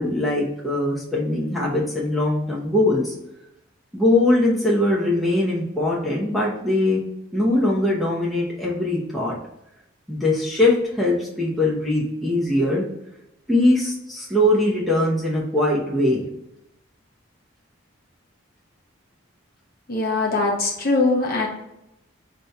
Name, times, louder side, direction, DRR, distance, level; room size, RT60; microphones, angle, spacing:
voice 1, 0.0-3.1 3.9-7.0 7.3-9.4 10.1-12.8 13.5-16.3, left 1 dB, ahead, -4 dB, 0.8 m, -21 dB
voice 2, 19.9-21.5, left 3 dB, 45° left, -1 dB, 0.9 m, -21 dB
5.2 x 2.8 x 3.3 m, 0.86 s
head